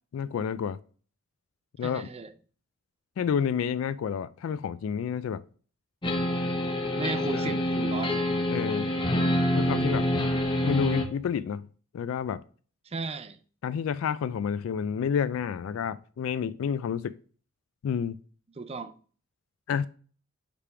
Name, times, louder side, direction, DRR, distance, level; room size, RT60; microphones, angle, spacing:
voice 1, 0.1-0.8 1.8-2.1 3.2-5.4 7.3-7.4 8.5-8.9 9.5-10.1 10.6-11.7 11.9-12.4 13.6-17.2 17.8-18.2 19.7-19.9, left 7 dB, 80° left, 0.3 m, -29 dB
voice 2, 1.8-2.3 6.9-8.3 12.9-13.4 18.6-18.9, right 3 dB, 30° right, 0.5 m, -35 dB
sound 1, 6.0-11.1, left 1 dB, 25° left, 0.8 m, -26 dB
4.9 x 3.5 x 5.6 m
head